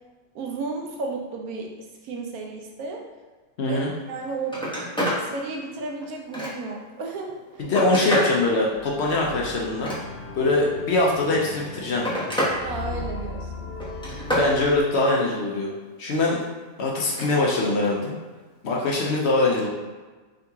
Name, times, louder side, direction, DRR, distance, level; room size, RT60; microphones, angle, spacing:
voice 1, 0.3-1.7 2.0-3.0 3.6-4.6 5.2-7.4 12.6-13.7, right 3 dB, 70° right, 0 dB, 1.1 m, -33 dB
voice 2, 3.6-3.9 7.6-9.9 10.3-12.0 14.3-15.7 16.0-16.4 16.8-18.1 18.6-19.7, left 2 dB, 60° left, -2 dB, 0.8 m, -22 dB
Telephone, 4.0-4.1 4.4-5.2 5.7-6.8 7.4-8.4 9.6-10.4 11.4-12.6 12.9-13.4 13.8-14.5 17.0-17.3 18.7-18.9, equal, 5° left, 0.7 m, -28 dB
sound 1, 8.7-14.8, left 2 dB, 90° left, 1.3 m, -37 dB
3.7 x 2.9 x 3.5 m, 1.3 s
omnidirectional pair, 1.7 m